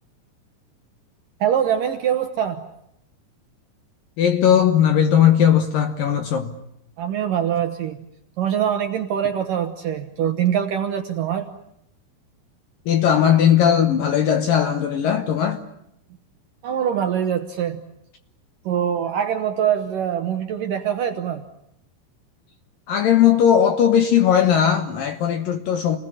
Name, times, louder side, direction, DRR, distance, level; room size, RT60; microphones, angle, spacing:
voice 1, 1.4-2.7 7.0-8.0 8.4-11.5 16.6-17.8 18.7-21.4, right 9 dB, 70° right, 2.1 m, -23 dB
voice 2, 4.2-6.6 12.9-15.6 22.9-26.0, left 9 dB, 70° left, 2.2 m, -18 dB
28.0 x 19.5 x 9.8 m
omnidirectional pair, 5.3 m